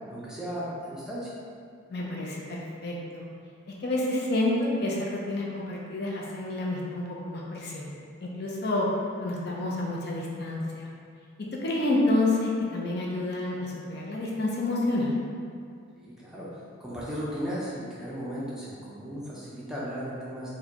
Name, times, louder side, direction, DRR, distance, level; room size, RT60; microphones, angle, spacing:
voice 1, 0.1-1.3 16.0-20.5, equal, 5° right, -8 dB, 0.5 m, -36 dB
voice 2, 1.9-3.2 3.8-7.9 8.2-8.9 9.2-10.9 11.6-15.2, left 2 dB, 50° left, -4 dB, 0.5 m, -29 dB
4.5 x 2.2 x 2.8 m, 2.3 s
head